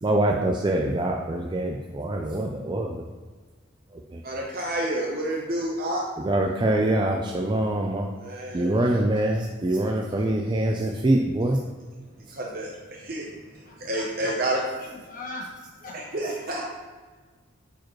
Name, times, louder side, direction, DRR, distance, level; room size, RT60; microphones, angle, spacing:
voice 1, 0.0-3.0 4.1-4.2 6.2-8.1 8.5-11.6, right 1 dB, 20° right, 1 dB, 0.4 m, -24 dB
voice 2, 4.2-6.0 8.2-8.7 12.3-14.6 15.9-16.6, right 1 dB, 45° right, -2 dB, 0.8 m, -29 dB
voice 3, 13.6-14.0 14.8-15.4 15.8-15.9, left 2 dB, 40° left, -3 dB, 1.4 m, -39 dB
8.8 x 4.7 x 3.1 m, 1.4 s
head